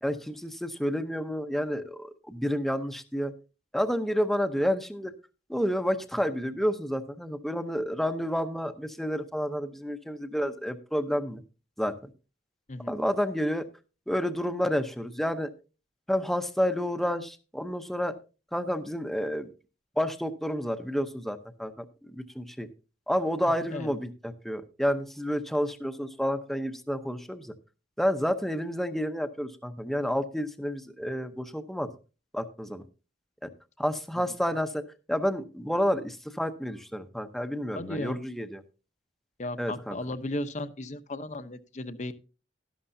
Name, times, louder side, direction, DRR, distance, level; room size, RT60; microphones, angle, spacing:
voice 1, 0.0-3.3 3.7-5.1 5.5-11.4 11.8-12.1 12.8-13.7 14.1-15.5 16.1-18.2 18.5-19.5 20.0-22.7 23.1-27.5 28.0-31.9 32.3-32.8 33.4-33.5 33.8-38.6 39.6-40.0, equal, ahead, 9 dB, 0.7 m, -30 dB
voice 2, 37.8-38.2 39.4-42.1, left 1 dB, 40° left, 12 dB, 0.7 m, -35 dB
12.5 x 11.0 x 2.7 m, 0.33 s
head